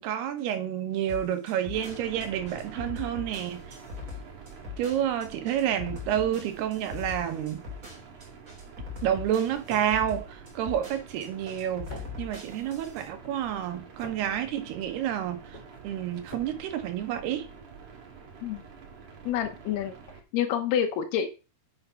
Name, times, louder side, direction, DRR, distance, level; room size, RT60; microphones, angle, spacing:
voice 1, 0.0-3.8 4.8-7.6 9.0-15.6 15.8-17.5, right 10 dB, 85° right, 3.5 m, -29 dB
sound 1, 1.1-13.1, left 5 dB, 20° right, 3.6 m, -41 dB
sound 2, 1.7-20.2, right 5 dB, 55° right, 3.4 m, -47 dB
sound 3, 9.6-17.8, right 1 dB, 15° left, 2.5 m, -51 dB
voice 2, 19.3-19.9 20.3-21.3, left 9 dB, 85° left, 3.2 m, -27 dB
8.8 x 6.5 x 5.8 m
omnidirectional pair, 4.5 m